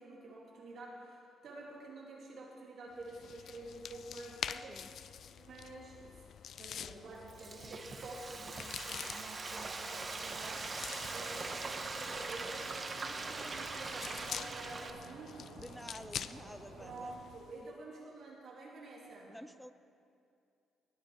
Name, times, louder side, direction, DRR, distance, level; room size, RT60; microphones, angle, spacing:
voice 1, 0.0-4.8 5.4-6.2 6.5-10.8 11.1-15.3 16.8-19.3, right 2 dB, 65° right, -2 dB, 2.7 m, -49 dB
sound 1, 3.0-17.7, left 8 dB, 60° left, 0.4 m, -47 dB
Frying (food), 7.0-14.9, right 3 dB, 35° right, 0.9 m, -42 dB
Stream, 10.1-17.2, right 4 dB, 80° right, 1.4 m, -53 dB
voice 2, 15.6-17.1 19.3-19.7, equal, ahead, 12 dB, 0.5 m, -50 dB
20.0 x 8.8 x 4.7 m, 2.5 s
cardioid pair, 90°, 0 cm